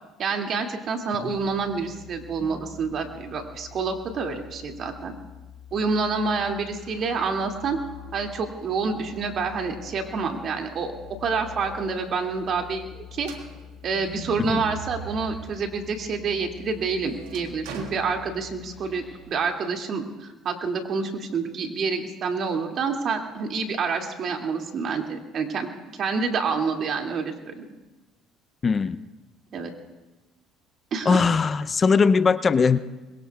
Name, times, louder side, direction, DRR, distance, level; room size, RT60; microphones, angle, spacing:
voice 1, 0.2-5.1 5.7-7.8 8.1-10.9 11.2-13.3 13.8-25.7 26.0-27.6 29.5-29.7 30.9-31.3, right 4 dB, 55° right, 2 dB, 2.5 m, -28 dB
sound 1, 1.3-19.2, left 6 dB, 25° right, 5.6 m, -46 dB
sound 2, 13.2-15.6 16.1-18.9, right 6 dB, 90° right, 1.9 m, -41 dB
voice 2, 28.6-29.0 31.1-32.8, left 5 dB, 35° left, 13 dB, 0.6 m, -20 dB
26.0 x 22.0 x 2.4 m, 1.2 s
supercardioid pair, 85°, 0 cm